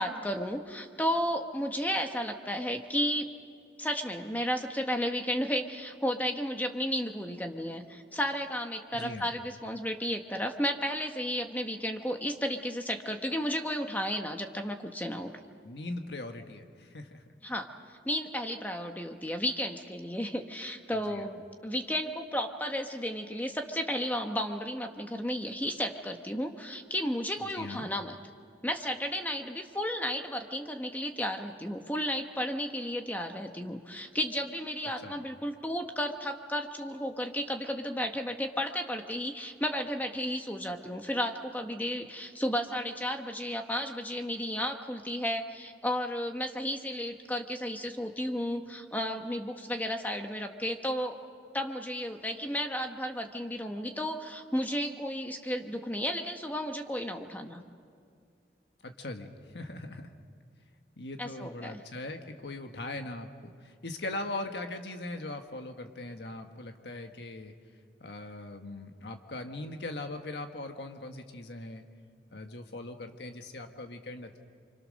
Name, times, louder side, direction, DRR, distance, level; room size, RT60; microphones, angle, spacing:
voice 1, 0.0-3.3 3.8-15.3 17.4-28.2 28.6-51.2 51.5-57.6 61.2-61.8, equal, 10° left, 5 dB, 1.2 m, -33 dB
voice 2, 8.9-9.3 15.6-17.2 20.9-21.3 27.4-27.9 35.0-35.2 58.8-60.1 61.0-67.5 68.0-71.8 72.3-74.4, left 2 dB, 75° left, 5 dB, 1.4 m, -40 dB
29.0 x 25.5 x 6.4 m, 2.2 s
head